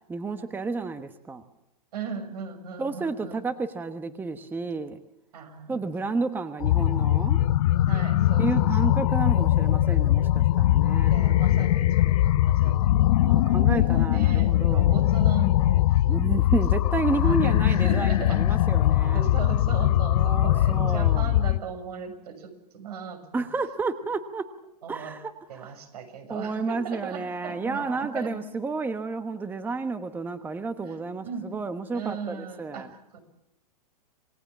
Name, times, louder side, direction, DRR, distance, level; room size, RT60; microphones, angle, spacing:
voice 1, 0.0-1.4 2.8-5.0 5.7-7.4 8.4-11.1 13.2-15.1 16.1-19.2 20.2-21.3 23.3-24.5 24.9-25.7 26.3-32.9, right 4 dB, 10° right, 10 dB, 1.1 m, -31 dB
voice 2, 1.9-3.5 5.3-5.8 7.9-9.0 11.1-16.0 16.3-16.6 16.8-18.7 19.0-23.5 24.8-25.1 25.5-28.4 30.8-31.0 31.2-31.4 31.9-33.2, right 6 dB, 70° right, 7 dB, 6.9 m, -38 dB
sound 1, 6.6-21.6, left 13 dB, 60° left, 1.0 m, -21 dB
28.0 x 18.5 x 7.3 m, 0.91 s
hypercardioid pair, 135°, 21 cm